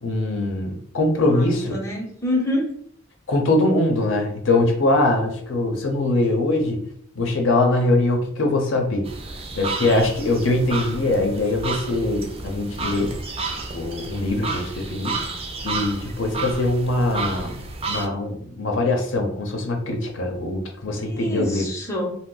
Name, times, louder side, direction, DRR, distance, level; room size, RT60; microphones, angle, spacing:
voice 1, 0.0-1.8 3.3-6.8 7.2-9.0 9.5-13.1 13.7-15.2 15.6-21.7, left 2 dB, 70° left, 3 dB, 0.7 m, -22 dB
voice 2, 1.2-2.8 21.0-22.2, left 1 dB, 15° left, -2 dB, 0.6 m, -27 dB
sound 1, 9.0-18.1, right 3 dB, 30° right, 0.4 m, -31 dB
2.7 x 2.1 x 3.8 m, 0.63 s
head